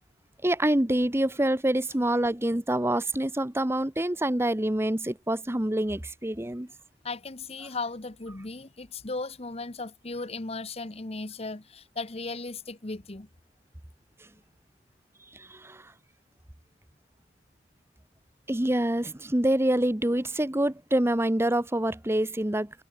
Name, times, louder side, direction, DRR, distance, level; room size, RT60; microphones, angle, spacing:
voice 1, 0.4-6.7 15.3-15.9 18.5-22.8, right 1 dB, 15° right, 1.0 m, -26 dB
voice 2, 7.0-13.3, left 3 dB, 35° left, 1.1 m, -36 dB
head